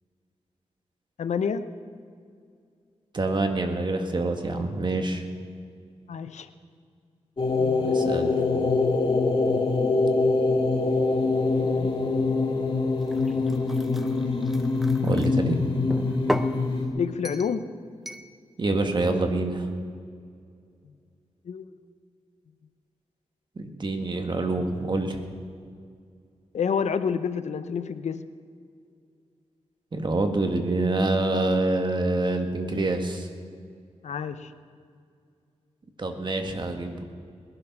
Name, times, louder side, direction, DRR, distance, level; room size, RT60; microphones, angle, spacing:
voice 1, 1.2-1.7 6.1-6.5 7.6-7.9 11.6-12.1 16.9-17.7 21.5-21.7 26.5-28.2 34.0-34.5, left 6 dB, 80° left, 11 dB, 0.7 m, -29 dB
voice 2, 3.1-5.2 7.8-8.3 15.0-15.6 18.6-19.7 23.5-25.2 29.9-33.3 36.0-37.0, right 2 dB, 40° right, 5 dB, 1.7 m, -26 dB
sound 1, 7.4-16.9, left 3 dB, 45° left, 2.7 m, -24 dB
sound 2, 13.0-15.3 15.9-16.6 17.3-17.6 18.1-18.3, equal, ahead, 0.7 m, -34 dB
20.0 x 11.0 x 6.0 m, 2.3 s
wide cardioid pair, 90°, 12 cm